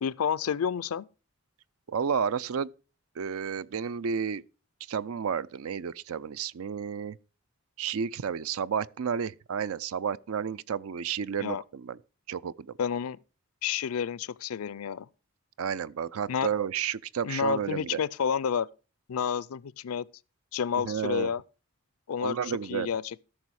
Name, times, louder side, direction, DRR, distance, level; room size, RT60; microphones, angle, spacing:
voice 1, 0.0-1.1 11.4-11.6 12.8-13.2 13.6-15.1 16.3-16.5 17.2-18.7 19.1-20.1 20.5-21.4 22.1-23.2, left 7 dB, 80° left, 0.4 m, -30 dB
voice 2, 1.9-2.7 3.2-4.4 4.9-7.2 7.8-12.0 12.3-12.7 15.6-18.0 20.8-21.3 22.2-22.9, right 7 dB, 75° right, 0.4 m, -31 dB
13.5 x 6.2 x 4.7 m
head